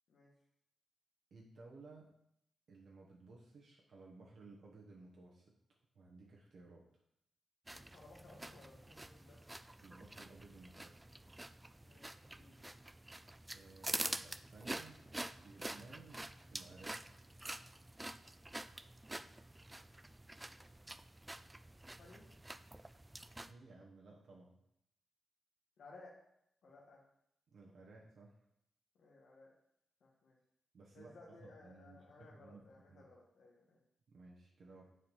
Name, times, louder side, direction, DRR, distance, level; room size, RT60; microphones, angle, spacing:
voice 1, 1.3-2.1 2.7-5.5 5.9-6.8 9.8-11.1 13.5-15.1 15.4-17.0 23.5-24.5 27.5-28.4 30.7-33.0 34.1-34.8, right 3 dB, 65° right, -3 dB, 1.2 m, -58 dB
voice 2, 7.7-9.5 11.8-12.6 19.1-19.3 21.7-22.3 25.8-26.1 26.6-27.0 28.9-29.5 30.0-30.4 30.9-33.8 34.8-34.9, left 3 dB, 75° left, -4 dB, 1.5 m, -60 dB
sound 1, 7.7-23.5, right 1 dB, 15° right, 0.3 m, -47 dB
7.7 x 4.9 x 5.4 m, 0.78 s
wide cardioid pair, 110°, 0 cm